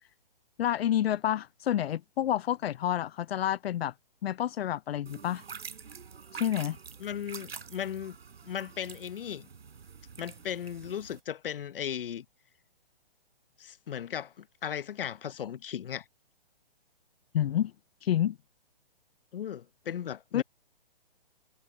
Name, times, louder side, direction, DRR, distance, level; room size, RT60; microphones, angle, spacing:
voice 1, 0.6-3.9 4.2-5.4 6.3-6.8 17.3-17.7 18.0-18.4 20.3-20.4, left 11 dB, 80° left, 0.4 m, -29 dB
sound 1, 5.1-11.2, right 6 dB, 80° right, 4.5 m, -46 dB
voice 2, 7.0-8.2 8.4-9.5 10.2-12.2 13.6-16.0 19.3-20.4, left 9 dB, 65° left, 0.8 m, -36 dB
hypercardioid pair, 165°, 30 cm